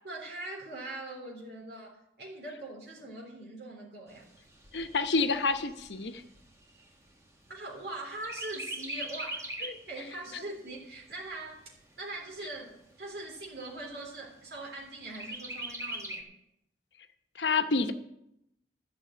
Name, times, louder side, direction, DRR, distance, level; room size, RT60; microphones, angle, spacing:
voice 1, 0.0-4.2 7.5-9.4 9.9-11.6 12.0-16.2, right 2 dB, 70° right, -1 dB, 3.4 m, -42 dB
Chirp tweet, 4.1-7.8 8.2-9.9 10.3-10.4 10.8-11.8 12.4-12.5 12.8-12.9 13.4-13.9 15.1-16.2, right 1 dB, 15° right, 1.6 m, -41 dB
voice 2, 4.7-6.2 9.6-9.8 17.4-17.9, left 4 dB, 85° left, 8 dB, 0.9 m, -28 dB
13.0 x 6.1 x 8.6 m, 0.78 s
head